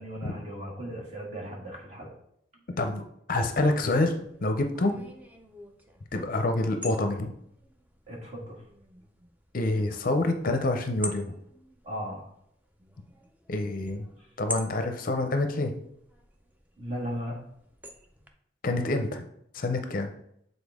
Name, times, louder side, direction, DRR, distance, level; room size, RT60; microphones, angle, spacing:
voice 1, 0.0-2.1 8.1-8.6 11.8-12.3 14.2-14.3 16.8-17.4, equal, 35° right, -3 dB, 1.7 m, -36 dB
voice 2, 3.3-5.0 6.1-7.3 9.5-11.3 13.5-14.0 14.4-15.7 18.6-19.2 19.5-20.1, left 2 dB, 45° left, 6 dB, 0.5 m, -27 dB
sound 1, 3.7-18.3, equal, 10° right, 0.5 m, -46 dB
7.1 x 3.9 x 3.5 m, 0.72 s
head